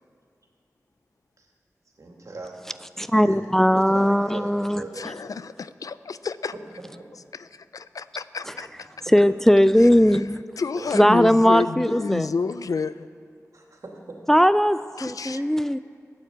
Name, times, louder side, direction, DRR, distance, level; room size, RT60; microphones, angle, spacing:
voice 1, 2.0-2.8 3.1-3.4 3.8-5.2 6.5-6.9 9.0-9.1 10.7-11.1 13.5-14.2 15.3-15.4, right 2 dB, 70° right, 0 dB, 2.5 m, -40 dB
voice 2, 3.0-4.8 9.1-10.4 10.9-12.3 14.3-15.8, equal, 5° left, 12 dB, 0.3 m, -18 dB
voice 3, 5.0-6.5 7.3-9.1 9.8-10.2 10.6-13.1 15.0-15.4, left 5 dB, 85° left, 14 dB, 0.4 m, -30 dB
16.0 x 9.3 x 8.1 m, 2.2 s
wide cardioid pair, 80°, 6 cm